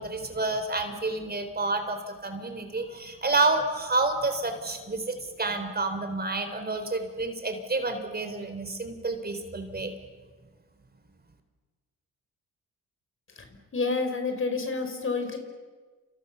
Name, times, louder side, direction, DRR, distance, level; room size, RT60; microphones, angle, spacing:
voice 1, 0.0-9.9, right 3 dB, 30° right, 7 dB, 3.7 m, -29 dB
voice 2, 13.4-15.4, left 4 dB, 40° left, 6 dB, 5.2 m, -29 dB
30.0 x 28.5 x 7.0 m, 1.4 s
cardioid pair, 100°, 33 cm